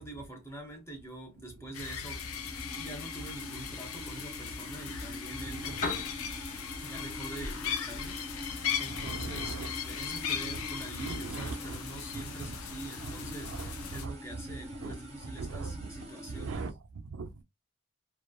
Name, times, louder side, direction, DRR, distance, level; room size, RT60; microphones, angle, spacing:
voice 1, 0.0-2.3 2.7-6.1 6.8-16.7, right 2 dB, 10° left, 0.8 m, -45 dB
sound 1, 1.7-14.1, left 7 dB, 80° left, 0.5 m, -38 dB
sound 2, 2.0-16.7, equal, 30° right, 0.8 m, -45 dB
voice 2, 5.4-5.8 8.7-9.7 10.9-11.8 12.1-12.6 13.0-14.4 14.8-14.9 15.2-17.4, right 4 dB, 70° right, 0.4 m, -41 dB
Piano, 5.6-13.6, left 4 dB, 40° left, 1.1 m, -45 dB
3.0 x 2.3 x 2.3 m
head